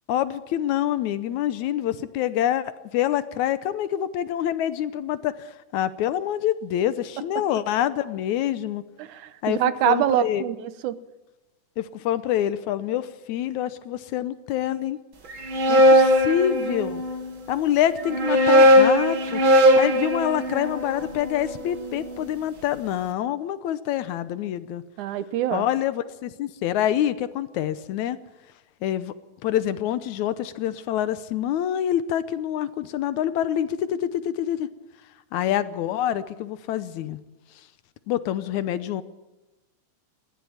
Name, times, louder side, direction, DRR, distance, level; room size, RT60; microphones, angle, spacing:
voice 1, 0.1-5.3 5.7-8.8 9.4-9.6 9.9-10.4 11.8-15.0 15.7-17.0 17.5-19.4 19.8-24.8 25.5-28.2 28.8-29.1 29.4-34.7 35.3-37.2 38.1-39.0, left 11 dB, 75° left, 14 dB, 2.1 m, -26 dB
voice 2, 9.0-11.0 25.0-25.7, right 12 dB, 80° right, 14 dB, 2.3 m, -25 dB
sound 1, 15.3-17.2 18.0-22.1, equal, 40° right, 2.6 m, -19 dB
20.5 x 15.0 x 8.7 m, 1.1 s
omnidirectional pair, 3.6 m